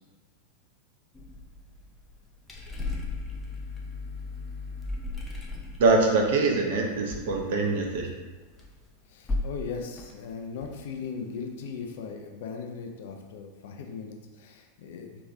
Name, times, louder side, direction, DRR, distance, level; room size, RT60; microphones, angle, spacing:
sound 1, 1.1-8.1 8.4-8.9 9.3-9.7 10.0-11.2, left 3 dB, 10° left, 0.8 m, -36 dB
voice 1, 5.8-8.1, right 3 dB, 55° right, 1 dB, 0.8 m, -23 dB
voice 2, 9.1-15.2, left 5 dB, 55° left, 3 dB, 0.6 m, -38 dB
4.8 x 3.0 x 3.6 m, 1.4 s
figure-of-eight pair, 90°, 0 cm